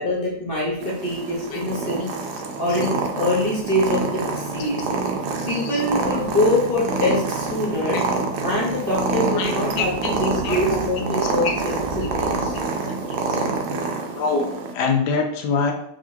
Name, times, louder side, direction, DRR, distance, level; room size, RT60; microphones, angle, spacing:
voice 1, 0.0-2.1 2.6-4.9 5.5-8.0 8.4-12.6, left 1 dB, 40° left, -5 dB, 0.9 m, -24 dB
Purr, 0.8-14.7, right 4 dB, 80° right, 1.1 m, -26 dB
voice 2, 5.4-5.8 7.7-8.0 9.3-11.5 12.0-12.1 13.3-13.4 14.2-14.5 14.7-15.7, left 4 dB, 90° left, 3 dB, 1.2 m, -26 dB
3.9 x 2.7 x 2.7 m, 0.74 s
omnidirectional pair, 1.7 m